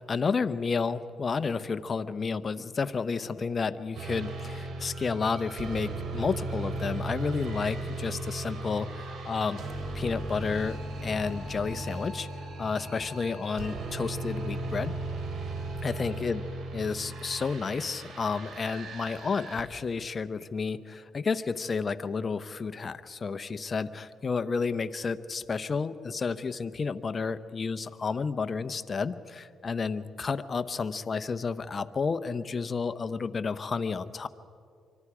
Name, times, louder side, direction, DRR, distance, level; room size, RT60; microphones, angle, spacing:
voice 1, 0.1-9.6 9.9-12.3 12.6-15.0 15.8-16.4 16.7-34.3, left 5 dB, 35° left, 11 dB, 0.8 m, -31 dB
sound 1, 3.9-19.6, right 2 dB, 70° right, 3.7 m, -37 dB
26.0 x 24.5 x 4.9 m, 2.4 s
cardioid pair, 90°, 0 cm